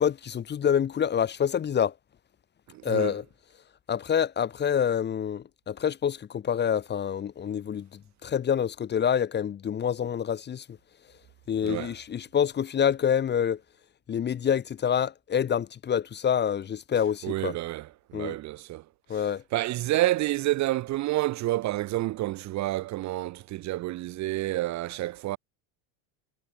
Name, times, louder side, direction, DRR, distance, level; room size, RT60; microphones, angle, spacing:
voice 1, 0.0-1.9 2.8-3.2 3.9-10.6 11.5-13.6 14.1-17.5 18.1-18.3 19.1-19.4, left 8 dB, 25° left, 1.0 m, -27 dB
voice 2, 2.7-3.1 11.6-11.9 17.2-18.8 19.1-19.2 19.5-25.4, right 16 dB, 40° right, 0.7 m, -29 dB
cardioid pair, 140°, 44 cm